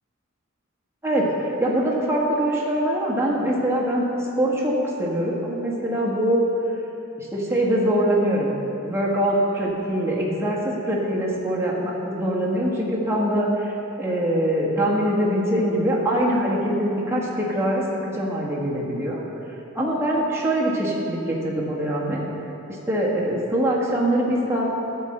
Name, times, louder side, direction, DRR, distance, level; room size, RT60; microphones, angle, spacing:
voice 1, 1.0-4.7 5.0-6.4 7.2-8.5 8.8-19.2 19.7-22.2 22.9-24.7, right 1 dB, 10° right, -5 dB, 1.6 m, -23 dB
12.5 x 4.5 x 7.6 m, 3.0 s
head